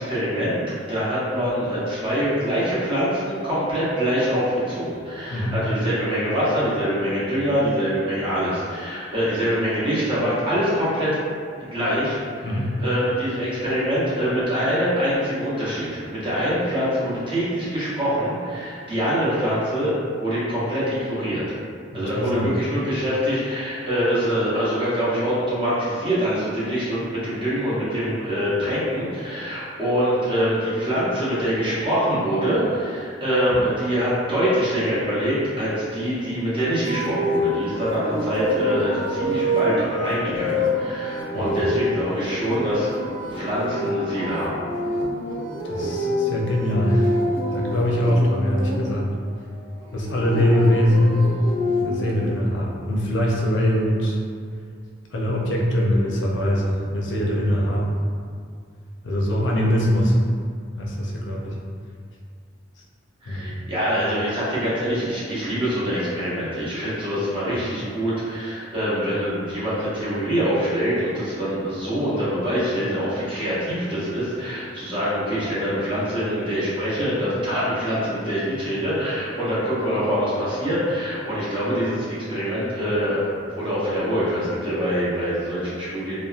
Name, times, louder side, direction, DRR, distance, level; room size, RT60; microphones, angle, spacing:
voice 1, 0.0-11.1 11.7-12.5 12.8-19.9 20.2-21.4 21.9-42.9 43.3-44.5 63.2-86.1, equal, 30° right, -10 dB, 0.9 m, -24 dB
voice 2, 5.3-5.6 12.4-12.8 21.9-22.5 33.5-33.6 41.3-41.6 45.6-47.1 47.5-49.1 49.9-51.3 51.8-54.2 55.1-58.0 59.0-60.1 60.8-61.6 63.3-63.6, equal, 70° left, -2 dB, 0.5 m, -22 dB
sound 1, 36.8-48.8 49.9-52.1, left 1 dB, 85° right, 0.5 m, -26 dB
2.7 x 2.1 x 2.4 m, 2.2 s
head